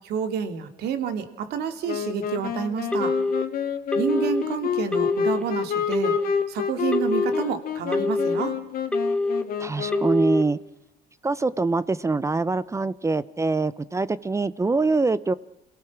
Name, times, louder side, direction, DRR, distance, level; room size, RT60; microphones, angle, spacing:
voice 1, 0.0-3.2 4.0-6.1 6.5-8.6, right 7 dB, 75° right, 8 dB, 2.8 m, -29 dB
Wind instrument woodwind instrument, 1.9-10.3, left 9 dB, 60° left, 2.1 m, -29 dB
Telephone, 2.9-3.4 3.9-4.4 4.9-5.4 5.9-6.4 6.9-7.4 7.9-8.4 8.9-9.4 9.9-10.4, left 2 dB, 5° left, 1.5 m, -25 dB
voice 2, 9.6-10.6 11.2-15.3, right 3 dB, 15° right, 17 dB, 0.7 m, -24 dB
28.5 x 18.0 x 6.0 m, 0.88 s
cardioid pair, 110°, 17 cm